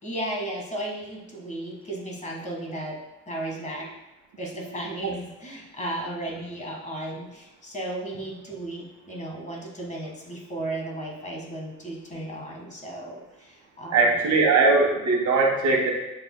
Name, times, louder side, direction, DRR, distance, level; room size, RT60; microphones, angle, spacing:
voice 1, 0.0-3.0 3.3-3.9 4.4-14.2, right 1 dB, 25° left, -2 dB, 1.7 m, -34 dB
voice 2, 13.9-15.9, right 3 dB, 70° right, 1 dB, 1.6 m, -20 dB
11.5 x 4.3 x 2.3 m, 0.95 s
cardioid pair, 90°, 30 cm